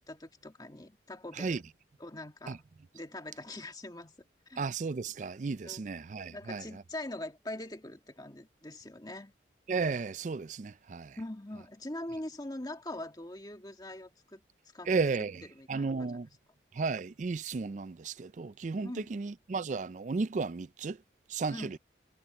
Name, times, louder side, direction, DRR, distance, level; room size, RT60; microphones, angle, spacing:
voice 1, 0.0-1.6 2.0-2.6 2.9-4.1 4.5-4.6 5.6-5.9 6.3-9.3 11.2-14.4 14.7-14.9 15.6-16.1 18.8-19.1 21.5-21.8, left 1 dB, 20° left, 1.8 m, -42 dB
voice 2, 4.6-6.8 9.7-11.2 14.9-15.4 15.7-16.3 16.7-21.0 21.3-21.8, right 4 dB, 40° right, 0.4 m, -34 dB
head